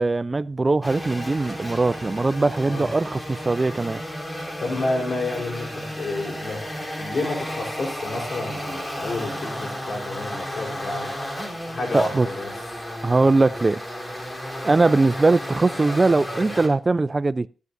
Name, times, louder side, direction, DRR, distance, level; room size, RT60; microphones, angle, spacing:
voice 1, 0.0-4.0 11.9-12.3 13.0-13.8 14.6-17.5, right 3 dB, 35° right, 0.4 m, -21 dB
sound 1, 0.8-16.7, equal, 25° left, 3.6 m, -33 dB
voice 2, 4.6-11.1 11.6-12.5, left 2 dB, 65° left, 3.6 m, -30 dB
13.5 x 11.0 x 2.6 m
cardioid pair, 50°, 0 cm